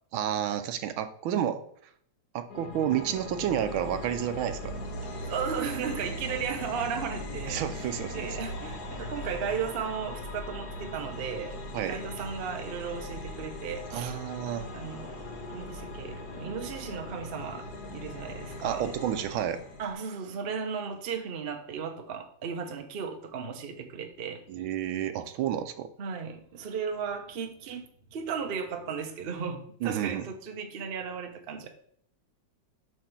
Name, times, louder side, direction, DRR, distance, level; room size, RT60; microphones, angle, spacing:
voice 1, 0.1-1.6 2.3-4.7 7.5-8.3 11.7-12.0 13.9-14.7 18.6-19.6 24.5-25.9 29.8-30.3, right 10 dB, 80° right, 1.5 m, -30 dB
sound 1, 2.5-19.9, left 1 dB, 60° left, 1.4 m, -39 dB
voice 2, 5.0-7.6 8.1-11.6 11.9-14.1 14.7-15.2 15.5-18.9 19.8-24.4 26.0-31.7, right 6 dB, 45° right, 0.7 m, -35 dB
7.7 x 3.4 x 5.9 m
omnidirectional pair, 2.2 m